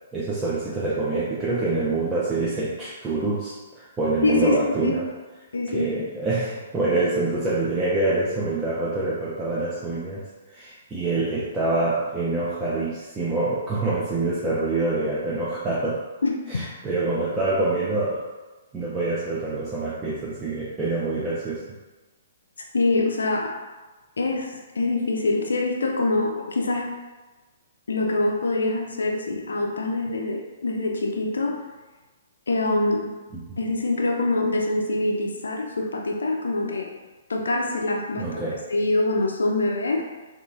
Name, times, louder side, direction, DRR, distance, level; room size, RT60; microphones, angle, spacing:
voice 1, 0.1-5.1 5.7-16.0 16.5-18.3 18.7-21.6 33.3-33.6 38.2-38.6, right 2 dB, 15° right, -9 dB, 0.5 m, -26 dB
voice 2, 4.2-4.6 4.8-5.0 5.5-5.9 16.2-16.6 22.7-23.5 24.2-26.9 27.9-31.6 32.5-33.1 33.6-36.9 37.3-38.4 38.7-40.0, left 2 dB, 70° left, 1 dB, 0.4 m, -24 dB
2.9 x 2.3 x 2.5 m, 1.2 s
figure-of-eight pair, 120°, 0 cm